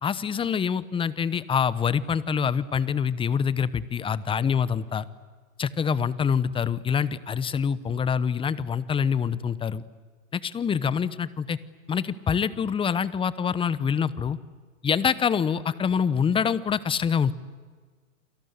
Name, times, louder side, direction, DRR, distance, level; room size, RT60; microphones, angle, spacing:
voice 1, 0.0-5.1 5.6-9.8 10.3-11.6 11.9-14.4 14.8-17.3, left 7 dB, 15° left, 18 dB, 0.9 m, -25 dB
30.0 x 23.0 x 8.1 m, 1.5 s
hypercardioid pair, 115°, 41 cm